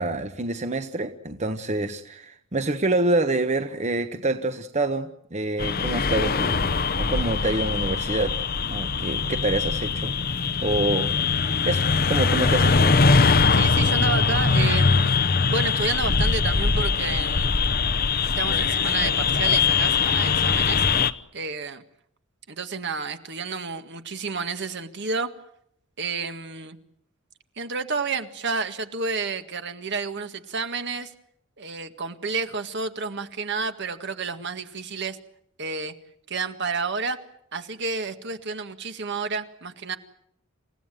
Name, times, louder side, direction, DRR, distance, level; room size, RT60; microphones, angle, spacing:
voice 1, 0.0-8.4 8.7-11.1 11.6-13.0, right 2 dB, 35° right, 8 dB, 1.2 m, -27 dB
sound 1, 5.6-21.1, left 5 dB, 45° left, 0.9 m, -22 dB
voice 2, 13.5-17.5 18.4-20.9 21.3-21.8 22.5-25.3 26.0-26.8 27.6-31.1 31.6-35.2 35.6-35.9 36.3-37.2 37.5-40.0, right 4 dB, 55° right, 8 dB, 1.8 m, -30 dB
28.5 x 16.5 x 9.2 m, 0.73 s
head